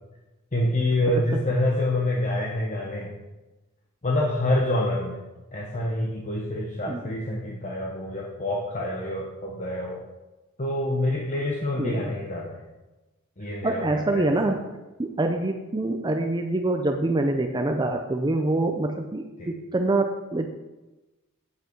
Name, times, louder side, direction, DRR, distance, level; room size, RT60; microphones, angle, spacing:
voice 1, 0.5-3.1 4.0-5.2 5.5-10.0 10.6-12.6 13.4-14.3 19.4-19.5, left 1 dB, 35° left, -1 dB, 1.0 m, -27 dB
voice 2, 11.8-12.1 13.6-14.6 15.0-20.5, right 2 dB, 20° right, 4 dB, 0.5 m, -25 dB
8.5 x 7.9 x 4.6 m, 1.1 s
head